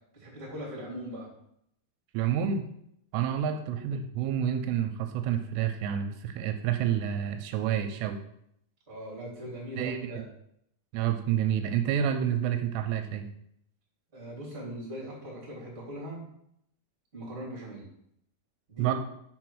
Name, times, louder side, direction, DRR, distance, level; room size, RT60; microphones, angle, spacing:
voice 1, 0.1-1.3 3.4-3.6 8.9-10.3 14.1-16.2 17.1-17.8 18.7-18.9, equal, 15° right, -5 dB, 2.5 m, -40 dB
voice 2, 2.1-2.6 3.1-8.2 9.8-10.1 10.9-13.3 18.8-18.9, right 9 dB, 85° right, 6 dB, 2.7 m, -29 dB
5.9 x 4.7 x 6.2 m, 0.75 s
omnidirectional pair, 5.0 m